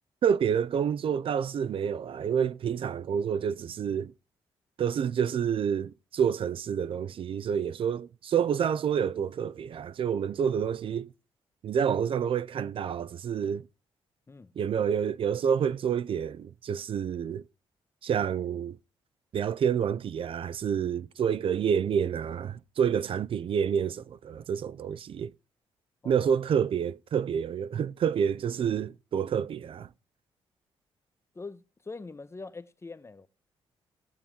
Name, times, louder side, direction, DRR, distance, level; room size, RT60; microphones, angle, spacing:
voice 1, 0.2-4.1 4.8-11.1 11.6-13.6 14.6-17.4 18.0-18.8 19.3-25.3 26.0-29.9, right 8 dB, 55° right, 0.4 m, -28 dB
voice 2, 31.3-33.3, left 3 dB, 25° left, 0.7 m, -43 dB
18.0 x 6.9 x 3.7 m
cardioid pair, 70°, 11 cm